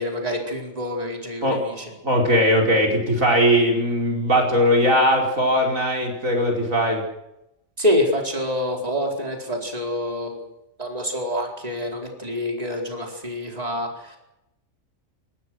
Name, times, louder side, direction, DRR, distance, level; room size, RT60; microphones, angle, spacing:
voice 1, 0.0-1.9 7.8-10.4 10.8-14.2, left 1 dB, 30° right, 1 dB, 4.6 m, -26 dB
voice 2, 1.4-7.0, equal, 75° right, 0 dB, 5.5 m, -20 dB
26.0 x 19.5 x 6.4 m, 0.86 s
omnidirectional pair, 1.4 m